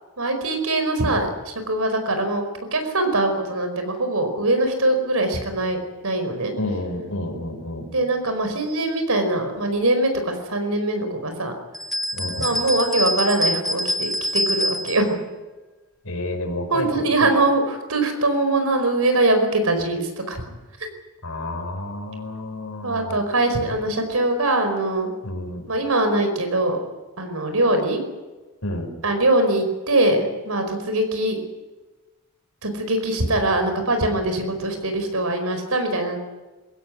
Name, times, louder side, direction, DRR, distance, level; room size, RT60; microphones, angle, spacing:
voice 1, 0.2-6.5 7.9-11.5 12.4-15.1 16.7-20.4 20.8-20.9 22.8-25.1 25.7-26.8 27.2-28.0 29.0-31.4 32.6-36.2, right 2 dB, 85° right, 7 dB, 5.0 m, -22 dB
voice 2, 6.6-7.9 12.1-12.6 16.0-17.3 21.2-23.2 25.2-25.7 28.6-28.9, left 1 dB, 80° left, 3 dB, 5.1 m, -30 dB
sound 1, 11.7-15.1, equal, ahead, 1.2 m, -25 dB
22.5 x 16.0 x 9.6 m, 1.2 s
head